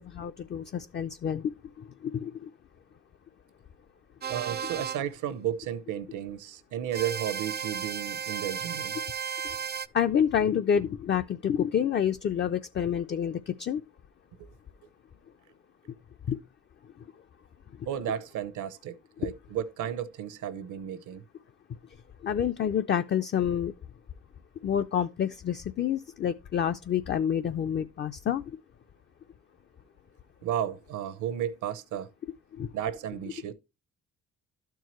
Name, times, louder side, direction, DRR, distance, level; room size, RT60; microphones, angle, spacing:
voice 1, 0.0-2.5 9.9-13.8 16.3-16.4 17.0-17.1 17.8-17.9 19.2-19.3 22.2-23.7 24.6-28.6 32.5-32.7, left 8 dB, 35° left, 0.4 m, -28 dB
sound 1, 4.2-5.0 6.9-9.9, right 7 dB, 35° right, 0.4 m, -34 dB
voice 2, 4.3-9.0 14.4-14.5 17.8-21.2 30.4-32.1 32.7-33.5, right 10 dB, 80° right, 0.8 m, -33 dB
12.0 x 4.6 x 3.0 m
cardioid pair, 90°, 30 cm